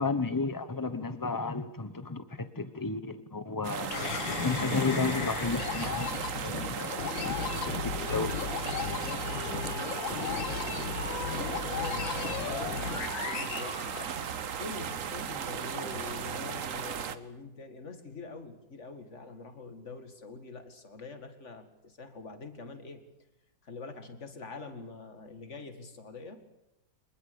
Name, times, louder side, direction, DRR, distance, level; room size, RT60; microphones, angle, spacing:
voice 1, 0.0-4.0 4.4-6.9 7.2-7.4 7.7-7.8 8.1-8.3, left 3 dB, 15° left, 11 dB, 0.8 m, -32 dB
sound 1, 3.6-17.2, right 7 dB, 50° right, 1.2 m, -36 dB
sound 2, 3.9-14.5, left 6 dB, 75° left, 2.1 m, -35 dB
voice 2, 7.2-8.0 8.4-10.9 11.3-14.0 14.6-23.0 23.6-26.4, left 3 dB, 35° left, 7 dB, 2.4 m, -45 dB
24.0 x 21.5 x 7.0 m, 0.93 s
omnidirectional pair, 2.1 m